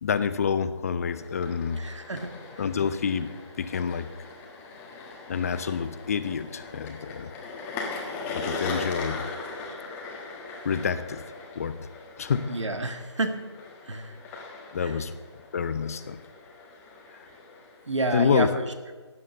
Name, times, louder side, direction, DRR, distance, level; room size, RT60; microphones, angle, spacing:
voice 1, 0.0-1.8 2.6-3.3 3.6-4.1 5.3-7.3 8.3-9.3 10.6-11.2 11.6-11.8 12.2-12.5 14.7-15.1 15.5-16.2 18.1-18.5, left 6 dB, 30° left, 12 dB, 0.6 m, -27 dB
sound 1, 1.1-18.0, left 3 dB, 15° left, 1.5 m, -40 dB
voice 2, 1.8-2.3 12.5-13.4 13.9-14.2 14.8-15.0 17.9-18.7, right 2 dB, 80° right, 7 dB, 1.8 m, -29 dB
15.0 x 9.5 x 6.7 m, 1.4 s
figure-of-eight pair, 155°, 15 cm